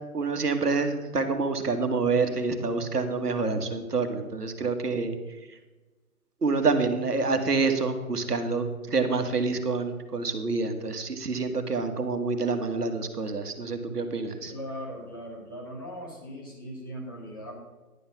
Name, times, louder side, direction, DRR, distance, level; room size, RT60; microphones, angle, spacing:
voice 1, 0.1-5.1 5.5-5.6 6.4-14.5, right 4 dB, 85° right, 7 dB, 1.5 m, -27 dB
voice 2, 14.5-17.6, equal, 15° left, -2 dB, 1.3 m, -39 dB
10.5 x 5.7 x 5.9 m, 1.2 s
figure-of-eight pair, 165°, 46 cm